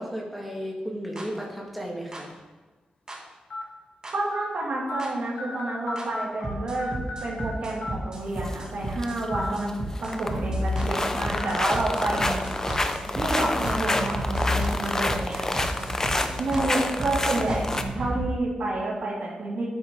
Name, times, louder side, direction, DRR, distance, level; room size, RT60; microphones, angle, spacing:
voice 1, 0.0-2.3 10.0-10.2 16.1-16.3, equal, ahead, -3 dB, 2.1 m, -34 dB
sound 1, 1.2-1.3 2.1-2.2 3.1-3.2 4.0-4.1 5.0-5.1 6.0-6.1 6.4-18.2, equal, 30° right, 2.4 m, -32 dB
sound 2, 1.4-1.6 2.3-2.4 3.5-3.6 4.3-4.4 4.9-5.0 5.4-6.5 6.8-7.5 7.8-7.9 9.2-9.5 9.9-10.0 11.4-11.6 12.0-12.2 12.6-12.7 13.4-13.5, left 2 dB, 80° left, 1.8 m, -35 dB
voice 2, 4.1-6.9 7.2-9.7 10.0-12.4 13.2-15.5 16.2-17.7 17.9-19.6, right 2 dB, 70° right, -6 dB, 2.7 m, -29 dB
sound 3, 8.4-8.6 8.9-9.2 9.5-10.4 10.7-17.8, left 2 dB, 20° left, 0.7 m, -28 dB
11.5 x 9.1 x 4.0 m, 1.2 s
wide cardioid pair, 130°, 3 cm